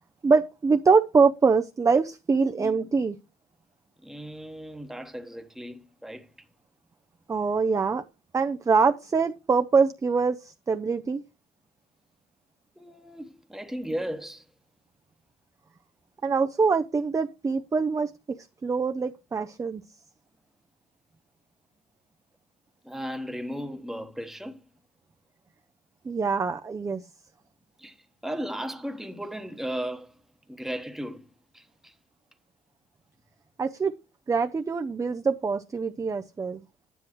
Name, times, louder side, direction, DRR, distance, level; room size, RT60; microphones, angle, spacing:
voice 1, 0.2-3.2 7.3-8.0 8.3-11.2 16.2-19.8 26.0-27.1 33.6-33.9 34.3-36.6, right 4 dB, 20° right, 0.5 m, -24 dB
voice 2, 2.6-2.9 4.0-6.3 12.8-14.4 22.8-24.6 27.8-28.0 28.2-30.2 30.5-31.3 31.5-31.9, equal, ahead, 1.0 m, -36 dB
11.0 x 9.8 x 3.0 m
cardioid pair, 110°, 17 cm